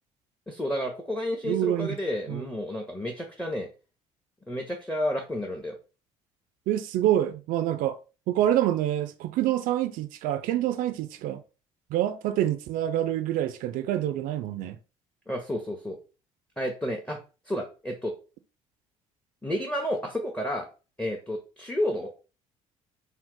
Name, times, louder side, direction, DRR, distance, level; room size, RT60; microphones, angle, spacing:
voice 1, 0.5-3.7 4.5-5.7 15.3-16.0 16.6-17.2 17.5-18.1 19.4-20.7 21.0-22.1, left 1 dB, 5° left, 0.7 m, -31 dB
voice 2, 1.4-2.0 2.3-2.5 6.7-8.0 8.3-11.4 11.9-14.8, right 12 dB, 55° right, 0.4 m, -26 dB
2.7 x 2.0 x 3.6 m
figure-of-eight pair, 50°, 17 cm